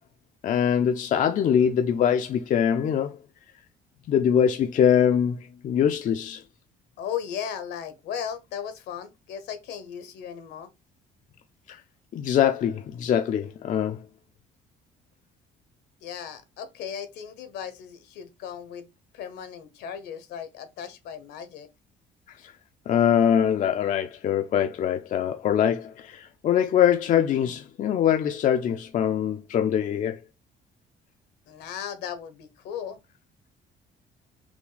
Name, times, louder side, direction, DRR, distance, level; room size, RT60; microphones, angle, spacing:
voice 1, 0.4-3.2 4.1-6.4 11.7-11.8 12.1-14.0 22.3-22.5 22.9-30.2, left 9 dB, 50° left, 0.5 m, -23 dB
voice 2, 7.0-10.7 16.0-18.9 19.1-21.7 31.5-33.0, left 8 dB, 80° left, 1.1 m, -36 dB
5.9 x 2.2 x 4.0 m
cardioid pair, 110°, 17 cm